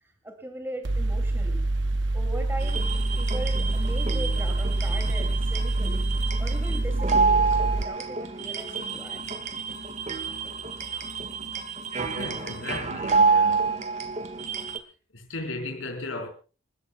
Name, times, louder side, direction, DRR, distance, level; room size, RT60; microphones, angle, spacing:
voice 1, 0.0-1.6 2.1-2.8 3.2-6.0 6.4-9.2, right 1 dB, 10° right, 2.6 m, -39 dB
Mechanical fan, 0.8-7.8, right 2 dB, 65° right, 0.7 m, -26 dB
sound 1, 2.6-14.8, right 4 dB, 35° right, 1.6 m, -28 dB
voice 2, 12.1-14.0 15.1-16.3, left 2 dB, 85° left, 4.3 m, -36 dB
29.0 x 14.0 x 2.3 m
head